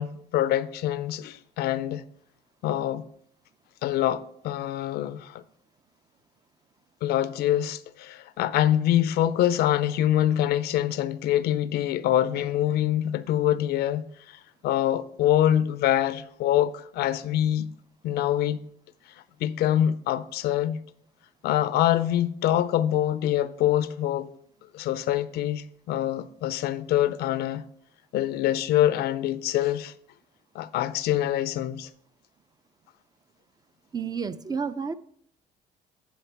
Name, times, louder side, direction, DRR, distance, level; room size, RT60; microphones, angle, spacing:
voice 1, 0.0-2.0 2.6-3.0 3.8-5.4 7.0-17.7 18.0-18.7 19.4-20.8 21.4-24.3 24.7-27.6 28.1-29.9 30.5-31.9, left 12 dB, 75° left, 0.5 m, -25 dB
voice 2, 33.9-34.9, right 6 dB, 25° right, 0.4 m, -30 dB
10.0 x 4.6 x 4.6 m
cardioid pair, 110°, 17 cm